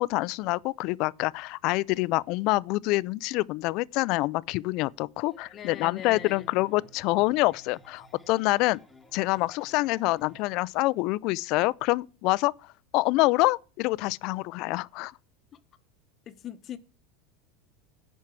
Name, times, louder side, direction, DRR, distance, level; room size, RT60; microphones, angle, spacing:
voice 1, 0.0-8.8 9.1-12.5 12.9-15.1, left 21 dB, 50° left, 0.4 m, -26 dB
sound 1, 5.2-10.4, right 1 dB, 5° left, 1.2 m, -55 dB
voice 2, 5.5-6.5 15.5-15.6 16.3-16.8, left 10 dB, 30° left, 0.9 m, -41 dB
10.5 x 4.6 x 7.5 m
supercardioid pair, 145°, 0 cm